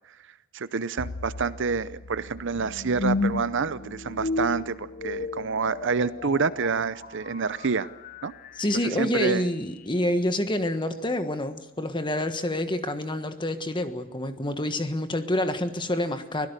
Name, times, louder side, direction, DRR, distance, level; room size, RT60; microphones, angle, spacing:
voice 1, 0.5-7.9 8.2-8.3 9.0-9.4, right 5 dB, 55° right, 0.7 m, -28 dB
sound 1, 1.0-10.1, left 3 dB, 40° left, 0.6 m, -34 dB
voice 2, 8.5-16.5, left 1 dB, 20° left, 1.4 m, -27 dB
24.5 x 17.0 x 6.7 m
head